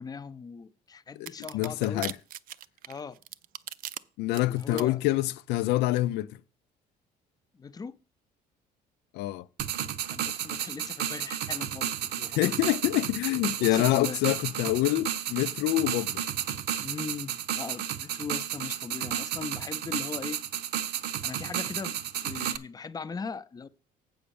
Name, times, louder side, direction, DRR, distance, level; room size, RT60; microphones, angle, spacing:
voice 1, 0.0-2.1 2.9-3.2 4.4-5.0 6.1-6.3 7.5-7.9 10.1-12.8 13.6-14.2 16.8-20.4 21.2-23.7, left 5 dB, 20° left, 0.5 m, -39 dB
voice 2, 1.2-2.2 4.2-6.4 9.1-9.5 12.4-16.2, left 16 dB, 90° left, 0.5 m, -26 dB
sound 1, 1.3-4.0 4.3-4.8, right 12 dB, 55° right, 0.5 m, -38 dB
sound 2, 9.6-22.6, right 10 dB, 80° right, 0.8 m, -32 dB
7.8 x 5.1 x 7.0 m
cardioid pair, 110°, 17 cm